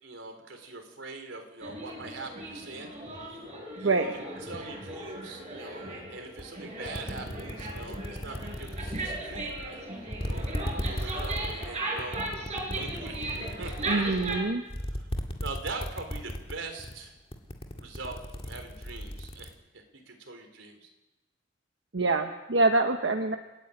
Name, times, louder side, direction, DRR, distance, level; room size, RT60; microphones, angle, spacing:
voice 1, 0.0-2.9 3.8-4.1 4.4-10.6 10.8-12.2 12.7-14.3 14.7-15.1 15.4-17.2 17.8-20.9, right 3 dB, 90° right, 5 dB, 3.9 m, -42 dB
sound 1, 1.6-14.4, right 2 dB, 35° right, 6.4 m, -37 dB
sound 2, 6.4-6.5 6.8-9.7 10.1-16.5 16.8-17.1 17.3-19.5, equal, 30° left, 2.0 m, -35 dB
voice 2, 13.9-14.6 21.9-23.4, right 3 dB, 70° right, 5 dB, 1.1 m, -25 dB
30.0 x 10.5 x 8.8 m, 1.0 s
head